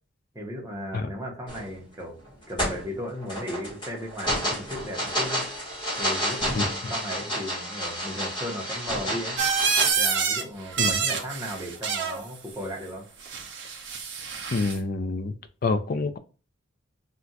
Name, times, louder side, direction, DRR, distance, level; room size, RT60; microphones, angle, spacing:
voice 1, 0.3-2.2 2.5-5.5 6.0-9.4 10.0-13.1, equal, 15° right, 0.7 m, -36 dB
sound 1, 1.5-1.8 2.2-9.9, equal, 25° left, 1.2 m, -30 dB
voice 2, 6.5-6.9 10.8-11.0 14.5-15.3 15.6-16.2, left 3 dB, 45° left, 0.3 m, -27 dB
Weird Balloon Sounds, 9.4-10.4 10.7-12.2 13.2-14.8, right 6 dB, 55° right, 0.5 m, -27 dB
2.4 x 2.2 x 3.9 m
head